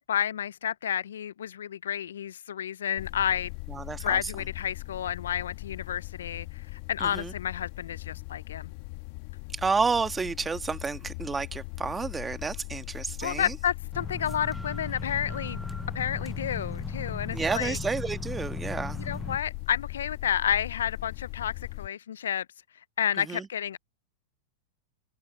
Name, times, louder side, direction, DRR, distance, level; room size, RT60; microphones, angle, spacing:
voice 1, 0.1-3.5 4.0-8.7 13.2-15.6 15.9-17.8 19.0-22.5 23.0-23.8, left 9 dB, 85° left, 0.3 m, -30 dB
sound 1, 3.0-21.9, left 26 dB, 55° left, 1.2 m, -39 dB
voice 2, 3.7-4.3 7.0-7.3 9.5-13.5 17.3-19.0 23.2-23.5, right 4 dB, 15° right, 1.4 m, -30 dB
sound 2, 13.9-19.4, equal, ahead, 0.4 m, -38 dB
open air
hypercardioid pair, 110°, 0 cm